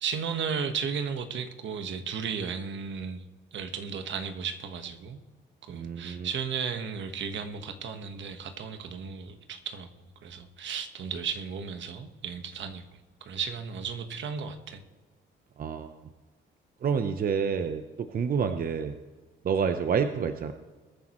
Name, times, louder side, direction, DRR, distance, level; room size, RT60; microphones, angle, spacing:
voice 1, 0.0-3.2 3.5-5.2 5.6-9.9 10.2-12.9 13.2-14.8, right 6 dB, 70° right, 7 dB, 1.3 m, -34 dB
voice 2, 5.7-6.3 15.6-15.9 16.8-19.0 19.4-20.5, right 6 dB, 45° right, 8 dB, 0.7 m, -28 dB
22.0 x 9.5 x 3.1 m, 1.4 s
cardioid pair, 90°, 20 cm